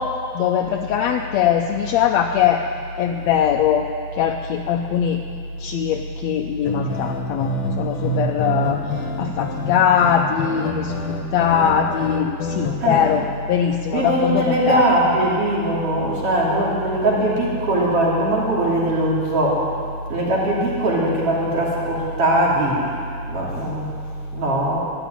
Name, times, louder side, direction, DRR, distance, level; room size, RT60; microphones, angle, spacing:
voice 1, 0.0-2.6 3.0-3.9 4.2-5.2 5.6-7.5 7.8-10.9 11.3-14.8, left 9 dB, 75° left, 3 dB, 1.8 m, -21 dB
sound 1, 6.6-13.2, left 1 dB, 50° left, 1.9 m, -27 dB
voice 2, 12.8-13.1 13.9-19.6 20.1-22.8 23.3-23.9 24.3-24.8, right 1 dB, 50° right, -5 dB, 3.9 m, -20 dB
13.5 x 11.0 x 9.0 m, 2.3 s
omnidirectional pair, 3.3 m